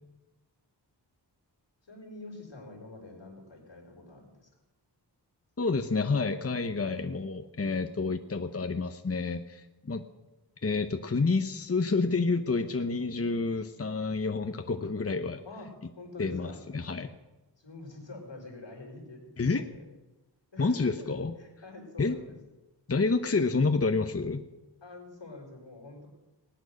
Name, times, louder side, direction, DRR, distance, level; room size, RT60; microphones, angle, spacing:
voice 1, 1.9-4.5 15.4-15.7 16.0-16.6 17.6-19.9 20.5-22.3 24.8-26.1, left 2 dB, 90° left, 0 dB, 4.5 m, -46 dB
voice 2, 5.6-10.0 10.6-15.4 16.2-17.1 19.4-19.7 20.6-21.3 22.0-22.2 22.9-24.4, left 4 dB, 35° left, 7 dB, 0.9 m, -29 dB
19.0 x 9.1 x 6.5 m, 1.1 s
wide cardioid pair, 65°, 43 cm